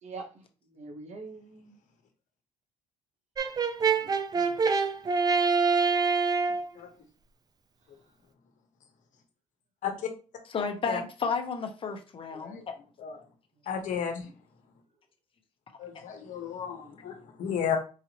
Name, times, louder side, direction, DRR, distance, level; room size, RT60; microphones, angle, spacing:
voice 1, 0.0-1.8 3.8-4.5 14.0-14.3, right 3 dB, 60° right, 2 dB, 1.1 m, -45 dB
Brass instrument, 3.4-6.7, right 5 dB, 30° right, 0.5 m, -25 dB
voice 2, 10.5-12.6, left 5 dB, 40° left, 5 dB, 0.9 m, -32 dB
voice 3, 13.7-14.2 15.8-17.8, left 8 dB, 70° left, 5 dB, 1.1 m, -33 dB
4.9 x 2.7 x 2.9 m, 0.35 s
cardioid pair, 100°, 13 cm